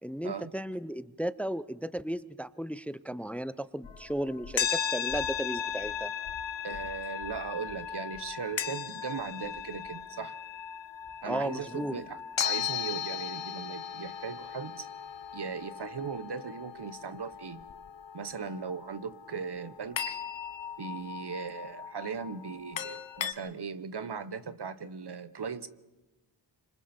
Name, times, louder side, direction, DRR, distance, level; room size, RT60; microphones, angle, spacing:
voice 1, 0.0-6.1 11.3-12.0, right 1 dB, 5° left, 0.7 m, -35 dB
sound 1, 3.8-23.3, left 8 dB, 70° left, 1.1 m, -37 dB
voice 2, 6.6-10.4 11.2-14.9 15.3-17.7 18.1-20.2 20.8-25.7, right 6 dB, 60° right, 1.3 m, -38 dB
26.0 x 25.5 x 4.5 m
cardioid pair, 55°, 46 cm